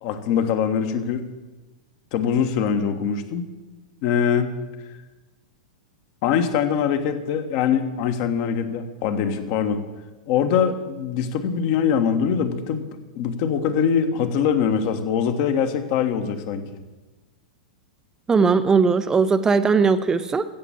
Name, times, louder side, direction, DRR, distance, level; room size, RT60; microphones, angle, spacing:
voice 1, 0.0-1.2 2.1-3.4 4.0-4.6 6.2-9.8 10.3-12.8 13.1-16.6, left 7 dB, 45° left, 8 dB, 1.3 m, -23 dB
voice 2, 18.3-20.5, right 5 dB, 15° right, 12 dB, 0.6 m, -19 dB
16.0 x 7.2 x 7.2 m, 1.2 s
figure-of-eight pair, 95°, 4 cm